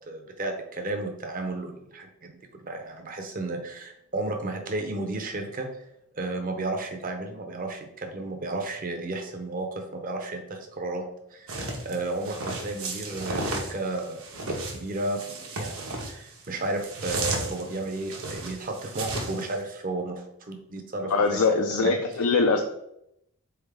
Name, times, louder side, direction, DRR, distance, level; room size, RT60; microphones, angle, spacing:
voice 1, 0.0-5.7 6.1-11.0 11.3-14.2 14.5-22.0, right 2 dB, 40° right, 4 dB, 0.6 m, -33 dB
sound 1, 11.5-19.6, right 2 dB, 65° right, 0.9 m, -34 dB
voice 2, 21.0-22.6, left 4 dB, 75° left, 4 dB, 0.4 m, -23 dB
4.0 x 3.4 x 3.5 m, 0.79 s
head